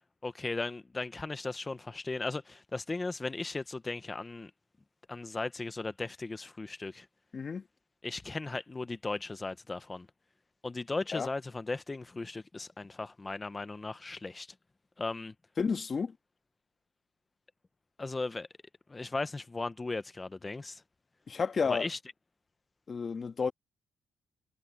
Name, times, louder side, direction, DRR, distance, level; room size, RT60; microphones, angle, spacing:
voice 1, 0.2-4.5 5.1-7.1 8.0-10.1 10.6-14.5 15.0-15.3 18.0-18.5 18.9-20.8 21.7-22.0, left 3 dB, 20° left, 1.1 m, -37 dB
voice 2, 7.3-7.6 11.1-11.3 15.6-16.2 21.3-21.9 22.9-23.5, left 5 dB, 40° left, 1.9 m, -31 dB
cardioid pair, 90°, 0 cm